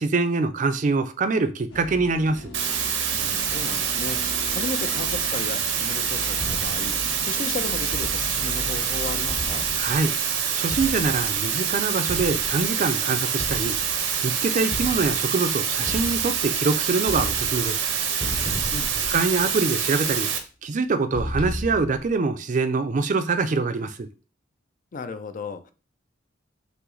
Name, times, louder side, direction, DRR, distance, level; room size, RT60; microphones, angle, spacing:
voice 1, 0.0-2.5 9.8-10.1 10.6-13.8 14.2-17.8 19.0-20.3 20.6-24.1, right 3 dB, 40° right, 0.4 m, -24 dB
sound 1, 1.7-10.0, left 1 dB, 85° left, 1.0 m, -39 dB
sound 2, 2.5-20.4, right 7 dB, 75° right, 0.7 m, -26 dB
voice 2, 3.1-9.7 18.7-18.9 24.9-25.7, left 4 dB, 45° left, 0.4 m, -35 dB
sound 3, 6.4-7.0 7.9-8.5 9.3-10.1 10.7-11.5 12.1-12.7 13.4-14.2 14.7-15.4 15.9-16.7 17.0-17.8 18.2-19.7 21.1-22.1, equal, 30° left, 0.8 m, -34 dB
5.6 x 2.0 x 3.8 m
head